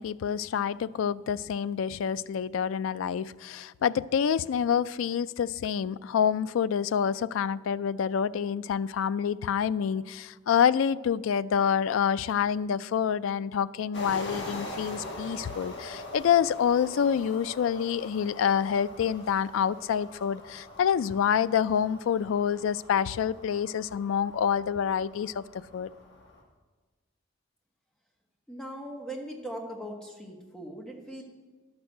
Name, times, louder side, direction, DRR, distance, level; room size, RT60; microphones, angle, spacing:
voice 1, 0.0-25.4 25.7-25.9, left 8 dB, 80° left, 0.3 m, -27 dB
sound 1, 13.9-26.4, left 1 dB, 60° left, 1.8 m, -43 dB
voice 2, 28.5-31.2, right 1 dB, 5° left, 1.2 m, -39 dB
11.0 x 6.1 x 6.5 m
head